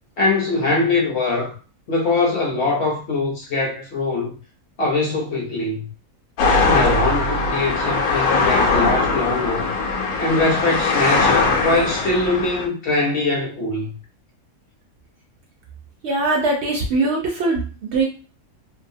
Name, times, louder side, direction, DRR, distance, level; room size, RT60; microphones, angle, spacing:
voice 1, 0.2-1.6 1.9-4.3 4.8-5.9 6.6-9.7 10.2-14.0, left 3 dB, 60° left, 0.8 m, -22 dB
sound 1, 6.4-12.7, left 3 dB, 85° left, 1.1 m, -20 dB
voice 2, 16.0-18.0, right 3 dB, 65° right, 0.8 m, -21 dB
2.7 x 2.1 x 2.6 m
omnidirectional pair, 1.5 m